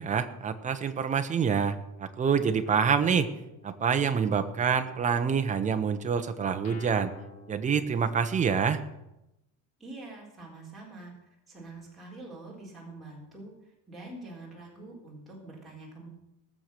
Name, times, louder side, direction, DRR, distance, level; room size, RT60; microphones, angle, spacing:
voice 1, 0.0-3.3 3.6-7.1 7.5-8.8, right 6 dB, 15° right, 8 dB, 0.8 m, -26 dB
Guitar, 2.7-4.2 4.7-8.5, left 4 dB, 35° left, 2.1 m, -52 dB
voice 2, 9.8-11.1 11.5-16.1, right 2 dB, ahead, -6 dB, 4.0 m, -45 dB
19.0 x 7.7 x 6.6 m, 0.90 s
cardioid pair, 160°, 43 cm